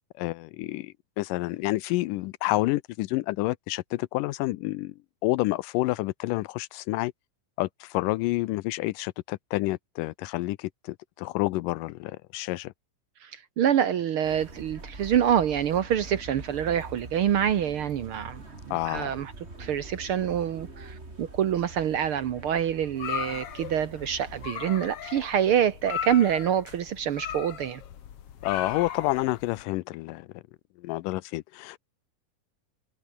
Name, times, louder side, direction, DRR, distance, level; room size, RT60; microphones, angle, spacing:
voice 1, 0.2-5.0 5.2-7.1 7.6-12.7 18.7-19.1 28.4-30.4 30.8-31.8, left 18 dB, 80° left, 2.2 m, -29 dB
voice 2, 13.2-19.3 19.6-27.8, right 9 dB, 70° right, 1.3 m, -26 dB
sound 1, 14.2-24.5, right 2 dB, 20° right, 3.9 m, -44 dB
sound 2, 23.0-29.6, left 9 dB, 55° left, 2.2 m, -37 dB
omnidirectional pair, 3.8 m